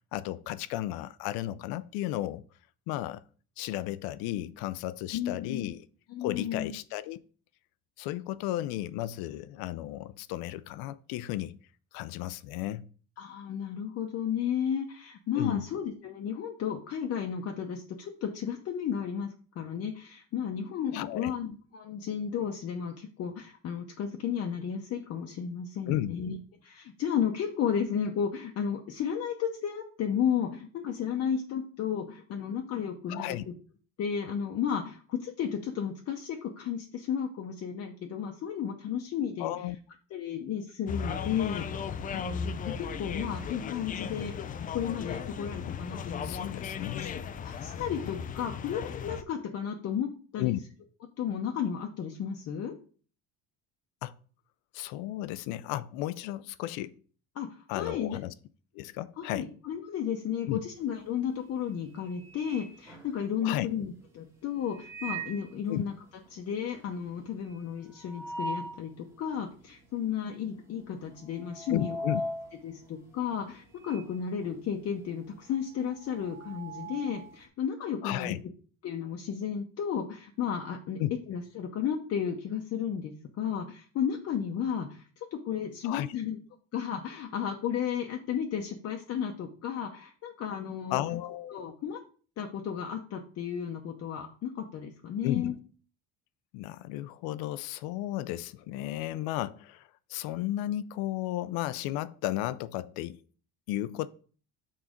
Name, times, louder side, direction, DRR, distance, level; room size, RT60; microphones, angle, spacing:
voice 1, 0.1-2.4 2.9-3.2 3.6-5.9 6.2-7.2 8.0-11.6 11.9-12.9 15.4-15.7 20.9-21.3 25.9-26.1 33.1-33.4 39.4-39.8 46.2-47.1 50.4-50.6 54.0-54.2 54.7-57.0 57.7-58.3 58.7-59.5 60.5-60.6 63.4-63.7 65.7-65.8 71.7-72.2 78.0-78.4 81.0-81.1 85.8-86.1 90.9-91.6 95.2-95.5 96.5-103.2 103.7-104.1, left 14 dB, 75° left, 0.6 m, -34 dB
voice 2, 5.1-5.7 6.1-6.7 13.2-26.4 26.6-33.5 34.0-39.5 40.1-41.7 42.1-44.5 44.7-46.6 47.0-47.1 47.4-50.5 51.2-52.7 57.3-58.2 59.2-65.9 66.3-72.0 72.6-78.3 78.8-81.0 81.3-85.0 85.3-86.4 86.7-91.0 91.5-92.0 92.4-95.5, left 8 dB, 40° left, 0.8 m, -33 dB
sound 1, 40.9-49.2, left 7 dB, 25° left, 0.3 m, -36 dB
sound 2, 60.8-61.2 61.6-63.6 64.6-65.5 65.9-66.0 66.3-66.4 66.7-68.9 69.4-69.5 70.3-70.6 70.9-74.2 74.4-77.4, right 1 dB, 5° right, 1.3 m, -40 dB
6.3 x 4.2 x 4.9 m
cardioid pair, 150°, 37 cm